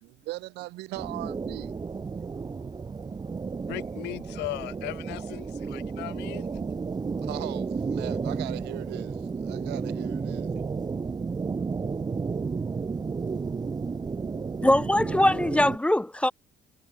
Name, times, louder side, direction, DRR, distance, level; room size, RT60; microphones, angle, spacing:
voice 1, 0.0-1.7 7.2-10.5, right 20 dB, 90° right, 2.3 m, -39 dB
sound 1, 0.9-15.8, right 5 dB, 25° right, 1.0 m, -32 dB
voice 2, 3.7-6.4, left 21 dB, 90° left, 1.2 m, -37 dB
voice 3, 14.6-16.3, left 1 dB, 5° left, 0.5 m, -22 dB
cardioid pair, 110°, 17 cm